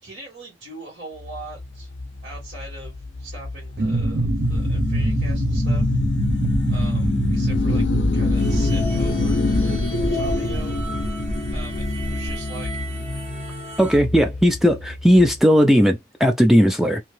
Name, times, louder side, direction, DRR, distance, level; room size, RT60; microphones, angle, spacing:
voice 1, 0.0-1.9 2.2-5.9 6.7-7.9 8.1-9.6 10.1-10.8 11.5-12.7, right 2 dB, 90° right, 2.0 m, -40 dB
sound 1, 1.2-15.4, left 3 dB, 80° left, 0.5 m, -26 dB
sound 2, 3.8-12.4, right 2 dB, 65° right, 0.7 m, -25 dB
sound 3, 8.4-14.0, equal, 35° right, 1.1 m, -36 dB
voice 2, 13.8-17.0, equal, ahead, 0.3 m, -16 dB
2.9 x 2.5 x 3.2 m
head